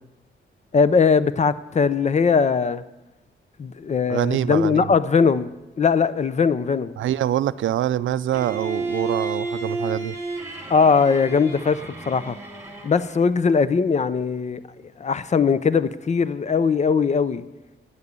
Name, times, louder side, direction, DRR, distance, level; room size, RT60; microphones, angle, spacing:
voice 1, 0.7-2.8 3.6-5.5 5.8-6.9 10.7-12.4 12.8-14.6 15.0-17.4, left 5 dB, 35° left, 0.6 m, -20 dB
voice 2, 4.1-4.9 7.0-10.2, right 12 dB, 80° right, 0.4 m, -25 dB
Bowed string instrument, 8.3-13.2, right 2 dB, 15° right, 2.9 m, -31 dB
11.0 x 9.6 x 6.9 m
cardioid pair, 90°, 20 cm